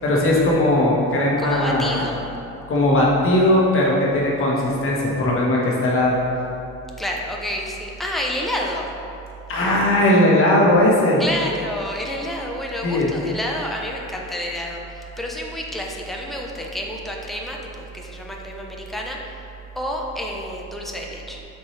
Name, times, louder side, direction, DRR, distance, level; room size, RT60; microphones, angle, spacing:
voice 1, 0.0-2.0 2.7-6.1 9.5-11.2 12.8-13.1, left 1 dB, 45° left, -4 dB, 1.3 m, -18 dB
voice 2, 1.4-2.3 7.0-8.9 11.2-19.4 19.8-21.4, equal, ahead, -1 dB, 0.5 m, -29 dB
7.3 x 4.6 x 3.2 m, 2.8 s
cardioid pair, 150°, 30 cm